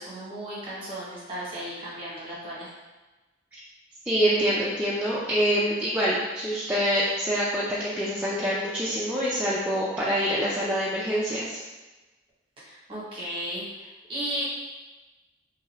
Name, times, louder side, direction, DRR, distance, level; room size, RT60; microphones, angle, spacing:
voice 1, 0.0-2.7 12.7-13.6 14.1-14.4, right 1 dB, 25° right, -8 dB, 1.0 m, -34 dB
voice 2, 4.0-11.6, equal, 5° right, -9 dB, 0.3 m, -26 dB
2.7 x 2.4 x 3.1 m, 1.2 s
head